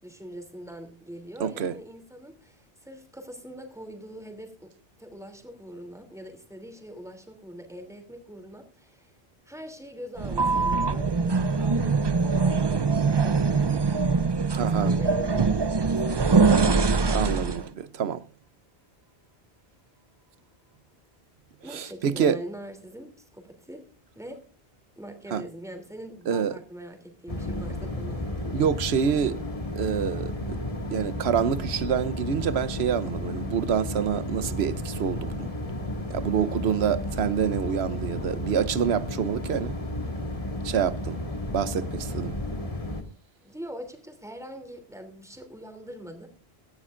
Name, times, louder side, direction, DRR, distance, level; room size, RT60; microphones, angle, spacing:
voice 1, 0.0-4.7 5.0-9.2 9.4-12.8 13.2-13.8 14.7-16.4 21.6-23.9 24.1-24.4 25.0-28.6 43.4-46.3, equal, 5° right, 2.9 m, -43 dB
voice 2, 1.4-1.8 14.5-14.9 17.1-18.2 21.7-22.4 25.3-25.4 26.3-26.6 28.5-29.4 29.8-30.6 30.9-35.5 36.1-39.8 40.6-41.2 41.5-42.3, right 7 dB, 90° right, 1.1 m, -27 dB
sound 1, 10.2-17.7, right 4 dB, 30° right, 0.5 m, -23 dB
sound 2, 27.3-43.0, left 1 dB, 35° left, 2.1 m, -33 dB
17.0 x 14.0 x 2.5 m
omnidirectional pair, 1.0 m